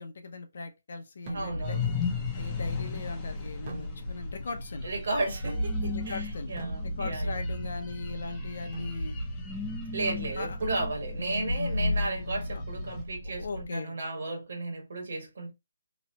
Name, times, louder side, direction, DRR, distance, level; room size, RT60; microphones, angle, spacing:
voice 1, 0.0-1.9 2.3-4.9 5.8-6.5 7.0-9.2 10.0-10.6 12.5-12.6 13.2-13.9, left 4 dB, 55° left, 0.6 m, -39 dB
sound 1, 1.3-13.7, left 1 dB, 90° left, 0.8 m, -35 dB
sound 2, 1.3-1.9 3.7-4.4 5.4-6.0 6.6-7.4 8.7-9.1 10.6-11.2, right 3 dB, 30° right, 0.7 m, -44 dB
voice 2, 1.3-1.9 4.8-7.4 9.9-15.5, right 2 dB, 60° right, 1.4 m, -34 dB
sound 3, 1.6-13.0, left 7 dB, 10° left, 0.4 m, -39 dB
2.9 x 2.0 x 2.7 m
hypercardioid pair, 165°, 0 cm